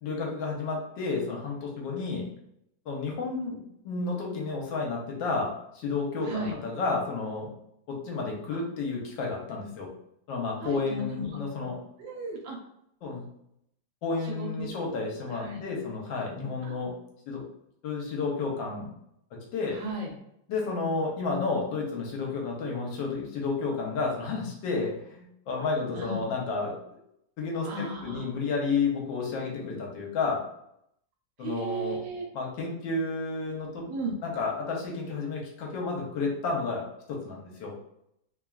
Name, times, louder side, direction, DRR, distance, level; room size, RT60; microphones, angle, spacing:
voice 1, 0.0-2.3 2.9-7.5 7.9-9.9 10.3-11.8 13.0-13.3 14.0-16.9 17.3-17.4 17.8-18.9 19.5-19.8 20.5-26.7 27.4-30.4 31.4-32.0 32.3-33.9 34.2-37.7, left 4 dB, 80° left, -1 dB, 1.4 m, -31 dB
voice 2, 6.2-6.6 8.5-8.6 10.6-11.4 12.0-12.6 14.2-14.7 15.3-15.6 16.6-16.7 19.7-20.1 25.9-26.2 27.6-28.3 31.4-32.2 33.9-34.2, right 2 dB, 75° right, -1 dB, 1.4 m, -35 dB
3.3 x 2.3 x 2.3 m, 0.75 s
omnidirectional pair, 2.0 m